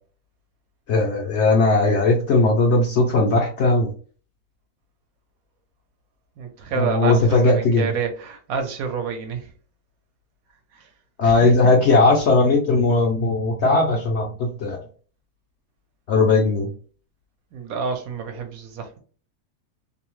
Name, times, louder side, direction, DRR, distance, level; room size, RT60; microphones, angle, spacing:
voice 1, 0.9-3.9 6.8-7.9 11.2-14.8 16.1-16.7, left 3 dB, 65° left, 0.7 m, -18 dB
voice 2, 6.4-9.5 10.7-10.9 11.2-11.5 17.5-19.0, right 6 dB, 75° right, 1.0 m, -28 dB
2.7 x 2.0 x 3.0 m
omnidirectional pair, 1.6 m